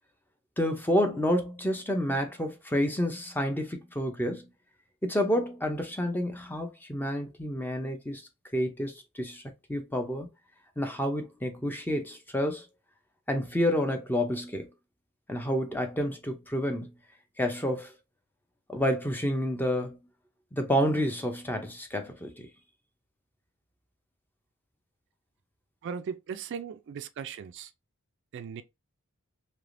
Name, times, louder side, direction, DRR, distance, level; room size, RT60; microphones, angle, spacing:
voice 1, 0.6-4.5 5.0-8.2 8.5-9.4 9.7-10.3 10.8-12.7 13.3-14.7 15.3-16.9 17.4-17.9 18.7-20.0 20.5-22.5, equal, 10° left, 0.5 m, -29 dB
voice 2, 25.8-27.7 28.3-28.6, right 7 dB, 55° right, 0.3 m, -38 dB
3.3 x 2.8 x 2.5 m
head